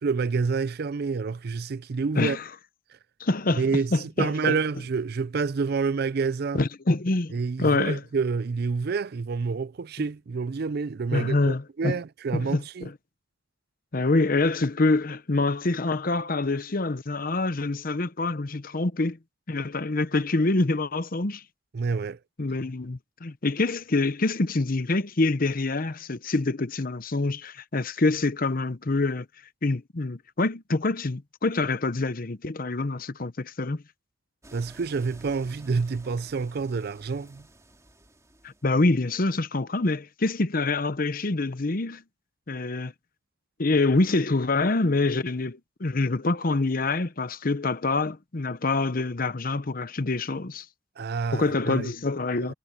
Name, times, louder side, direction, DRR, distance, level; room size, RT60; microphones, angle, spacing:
voice 1, 0.0-2.4 3.6-6.6 7.3-12.9 21.7-22.2 34.5-37.4 51.0-51.9 52.5-52.6, right 4 dB, 55° right, 0.4 m, -28 dB
voice 2, 3.2-3.6 3.9-4.6 6.6-7.3 7.6-8.0 11.1-12.0 12.3-12.6 13.9-19.2 19.5-21.4 22.4-29.3 29.6-33.8 38.4-42.0 42.5-42.9 43.6-50.6 51.3-52.5, left 3 dB, 50° left, 0.9 m, -26 dB
sound 1, 34.4-38.9, right 1 dB, 15° right, 2.9 m, -52 dB
head